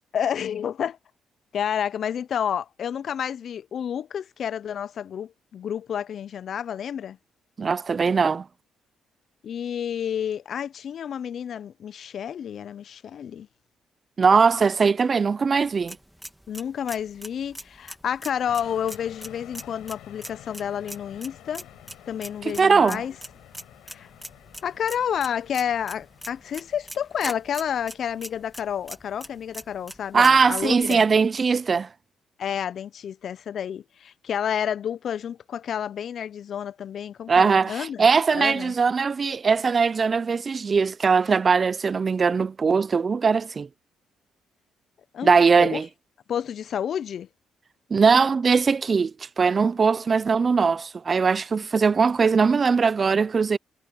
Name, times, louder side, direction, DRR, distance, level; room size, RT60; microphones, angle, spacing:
voice 1, 0.1-1.0 1.5-7.2 9.4-13.5 16.5-21.7 22.1-23.1 23.9-24.1 24.6-31.1 32.4-38.1 38.3-38.7 45.1-45.8 46.3-47.3, left 8 dB, 60° left, 0.4 m, -30 dB
voice 2, 7.6-8.5 14.2-16.0 22.4-23.0 30.1-31.9 37.3-43.7 45.2-45.9 47.9-53.6, right 5 dB, 40° right, 0.3 m, -20 dB
sound 1, 15.6-31.0, equal, 5° right, 2.5 m, -43 dB
sound 2, 18.5-26.8, left 14 dB, 85° left, 7.1 m, -49 dB
cardioid pair, 90°, 0 cm